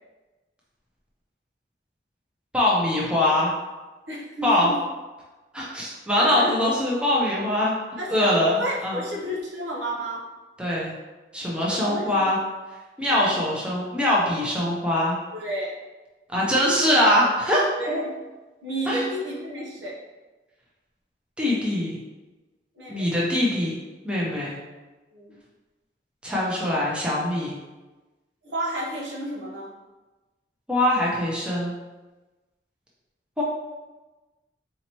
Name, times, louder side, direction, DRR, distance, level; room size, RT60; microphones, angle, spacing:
voice 1, 2.5-3.5 4.4-4.7 5.5-7.7 8.1-9.0 10.6-10.9 11.3-12.4 13.0-15.2 16.3-17.6 18.9-19.1 21.4-22.0 22.9-23.8 24.0-24.6 26.2-27.6 30.7-31.7 33.4-33.5, left 1 dB, 5° right, -6 dB, 0.7 m, -23 dB
voice 2, 4.1-4.8 6.2-6.6 8.0-10.2 11.7-12.3 13.1-13.3 15.3-15.8 17.8-18.1 18.6-20.0 22.8-23.1 25.1-25.4 28.4-29.7, right 1 dB, 80° right, -4 dB, 1.0 m, -31 dB
4.1 x 2.9 x 2.9 m, 1.2 s
head